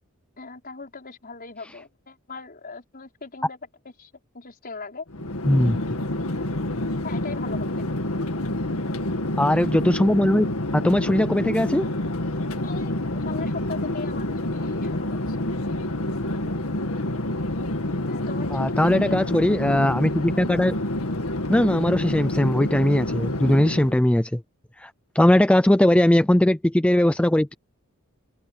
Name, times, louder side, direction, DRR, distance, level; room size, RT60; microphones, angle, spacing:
voice 1, 0.4-3.6 4.0-5.1 7.0-7.9 12.6-15.5 18.1-19.2, left 4 dB, 45° left, 5.3 m, -39 dB
Chatter / Fixed-wing aircraft airplane, 5.1-24.0, left 1 dB, 75° left, 2.0 m, -28 dB
voice 2, 5.4-5.8 9.4-10.5 10.7-11.9 18.5-20.7 21.5-24.4 24.8-27.5, left 1 dB, 5° left, 0.4 m, -20 dB
open air
head